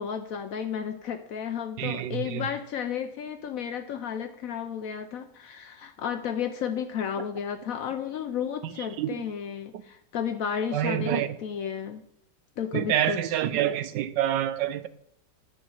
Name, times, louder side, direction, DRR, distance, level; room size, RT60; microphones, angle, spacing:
voice 1, 0.0-12.0 12.6-13.2, left 8 dB, 75° left, 0.8 m, -33 dB
voice 2, 1.8-2.5 7.2-7.3 8.6-9.1 10.7-11.4 12.7-14.9, right 11 dB, 75° right, 1.2 m, -27 dB
10.0 x 5.0 x 7.2 m
omnidirectional pair, 2.1 m